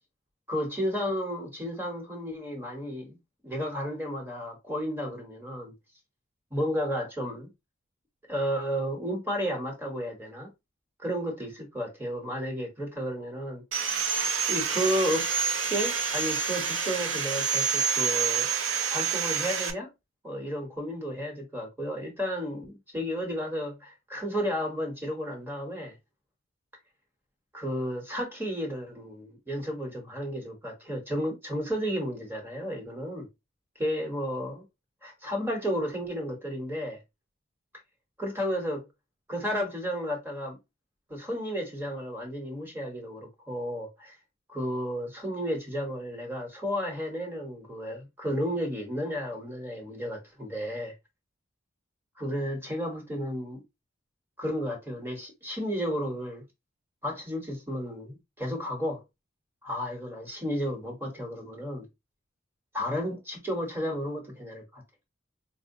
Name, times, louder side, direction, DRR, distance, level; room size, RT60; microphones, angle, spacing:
voice 1, 0.5-3.2 3.4-5.7 6.5-7.5 8.3-10.5 11.0-13.6 14.5-15.2 15.7-18.5 18.9-19.9 20.2-25.9 27.5-33.3 33.8-34.6 35.0-37.0 38.2-38.8 39.3-40.6 41.1-44.1 44.5-50.9 52.2-53.6 54.4-56.4 57.0-59.0 59.6-61.9 62.7-64.8, equal, 10° right, 1.0 m, -32 dB
Sawing, 13.7-19.7, right 6 dB, 65° right, 0.5 m, -28 dB
4.3 x 2.1 x 2.6 m
head